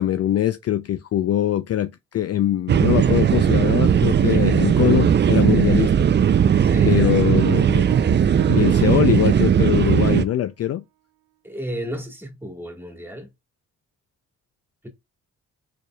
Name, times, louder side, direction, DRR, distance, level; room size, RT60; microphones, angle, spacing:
voice 1, 0.0-5.9 6.8-7.9 8.5-10.8, left 12 dB, 45° left, 0.4 m, -22 dB
sound 1, 2.7-10.2, right 8 dB, 35° right, 0.4 m, -18 dB
voice 2, 6.6-7.8 11.4-13.3, equal, 5° right, 1.6 m, -34 dB
Piano, 7.4-9.7, right 17 dB, 90° right, 0.5 m, -40 dB
4.1 x 3.4 x 2.3 m
supercardioid pair, 50°, 34 cm